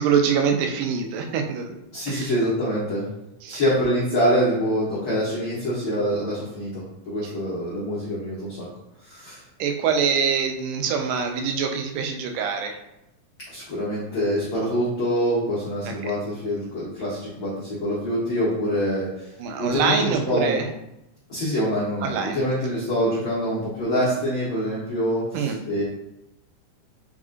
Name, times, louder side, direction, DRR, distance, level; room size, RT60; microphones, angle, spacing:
voice 1, 0.0-1.8 2.1-2.3 3.4-3.6 7.2-7.3 9.6-12.8 15.9-16.1 19.4-20.7 22.0-22.4 25.3-25.6, right 6 dB, 85° right, 4 dB, 2.2 m, -24 dB
voice 2, 1.9-3.0 3.5-8.7 9.0-9.4 13.5-19.3 19.6-20.6 21.3-25.8, equal, 65° left, -8 dB, 1.2 m, -25 dB
5.1 x 2.4 x 3.7 m, 0.88 s
omnidirectional pair, 3.6 m